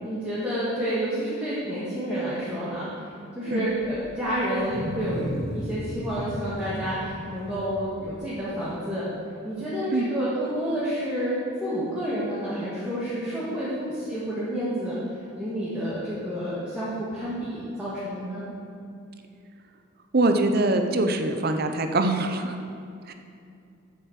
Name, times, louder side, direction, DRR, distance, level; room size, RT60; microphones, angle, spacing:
voice 1, 0.0-2.9 3.4-9.0 9.4-11.3 11.6-15.0 15.4-18.4, equal, 5° right, -11 dB, 1.9 m, -29 dB
Wild animals, 3.7-8.7, equal, 30° right, 1.4 m, -35 dB
voice 2, 20.1-22.6 23.1-23.2, right 2 dB, 45° right, 6 dB, 0.7 m, -23 dB
7.8 x 7.0 x 7.4 m, 2.5 s
head